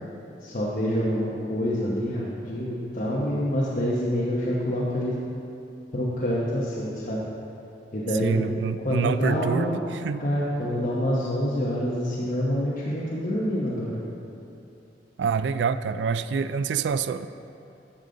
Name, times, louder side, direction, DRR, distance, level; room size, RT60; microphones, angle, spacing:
voice 1, 0.4-5.2 5.9-7.2 7.9-8.4 8.8-9.8 10.2-14.0, equal, 50° left, -7 dB, 1.0 m, -26 dB
voice 2, 8.2-10.2 15.2-17.3, right 6 dB, 75° right, 13 dB, 0.3 m, -26 dB
13.0 x 5.2 x 3.9 m, 2.8 s
head